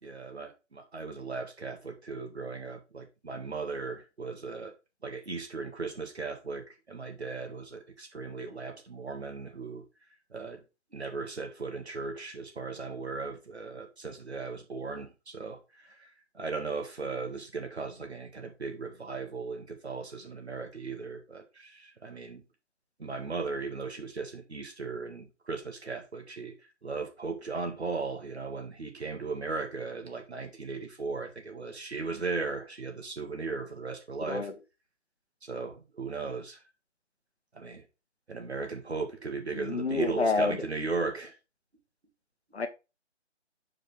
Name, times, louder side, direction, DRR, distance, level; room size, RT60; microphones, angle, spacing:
voice 1, 0.0-4.7 5.0-9.8 10.3-10.6 10.9-22.4 23.0-26.5 26.8-34.5 35.4-36.6 37.5-37.8 38.3-41.3, right 4 dB, 60° right, 1.7 m, -37 dB
voice 2, 39.5-40.6 42.5-42.7, left 4 dB, 60° left, 0.9 m, -28 dB
6.9 x 4.8 x 3.2 m
figure-of-eight pair, 150°, 36 cm